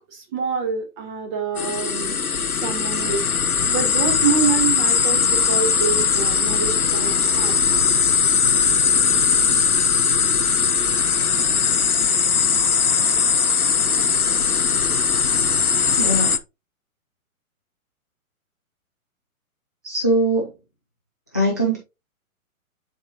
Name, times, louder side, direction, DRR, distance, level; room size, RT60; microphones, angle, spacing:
voice 1, 0.1-2.2 2.6-7.5, right 6 dB, 30° right, 2.7 m, -26 dB
sound 1, 1.6-16.4, left 6 dB, 85° left, 0.8 m, -19 dB
voice 2, 16.0-16.3 19.8-20.5 21.3-21.8, right 1 dB, 15° left, 0.3 m, -21 dB
9.6 x 4.4 x 2.7 m
figure-of-eight pair, 120°, 43 cm